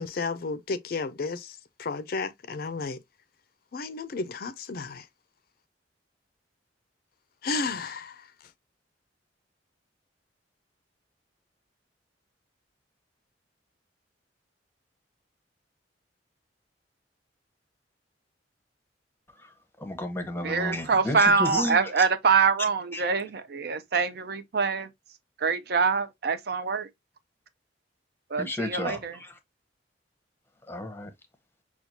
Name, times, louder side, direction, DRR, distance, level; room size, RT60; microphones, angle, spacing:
voice 1, 0.0-3.0 3.7-5.1 7.4-8.3, left 4 dB, 50° left, 0.4 m, -33 dB
voice 2, 19.8-21.9 22.9-23.1 28.4-29.4 30.7-31.1, left 1 dB, 10° left, 0.7 m, -32 dB
voice 3, 20.4-24.9 25.4-26.9 28.3-29.2, right 5 dB, 60° right, 0.5 m, -25 dB
5.8 x 2.3 x 2.7 m
head